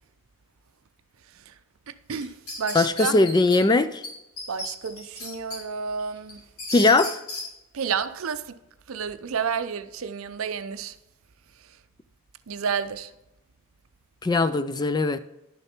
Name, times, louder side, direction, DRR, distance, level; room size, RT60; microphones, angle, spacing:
voice 1, 1.9-2.3 2.6-3.2 4.5-6.4 7.7-8.4 8.9-10.9 12.5-13.1, right 6 dB, 65° right, 0.5 m, -30 dB
sound 1, 2.1-3.6 4.0-4.1 4.4-5.6 6.0-7.5, left 2 dB, 75° left, 3.9 m, -34 dB
voice 2, 2.7-4.0 6.7-7.2 14.2-15.2, left 3 dB, 20° left, 0.3 m, -20 dB
11.0 x 6.7 x 4.4 m
head